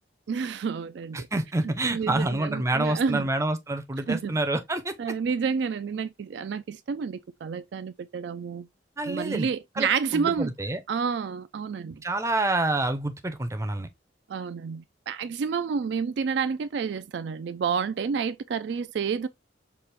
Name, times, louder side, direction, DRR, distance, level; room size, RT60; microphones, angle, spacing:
voice 1, 0.3-1.3 1.6-3.3 4.1-4.3 5.0-8.7 9.1-10.5 10.9-12.0 14.3-19.3, right 6 dB, 60° right, 0.3 m, -29 dB
voice 2, 1.1-4.9 9.0-9.5 9.8-10.8 12.0-13.9, right 2 dB, 15° right, 0.5 m, -27 dB
5.9 x 2.5 x 3.3 m
head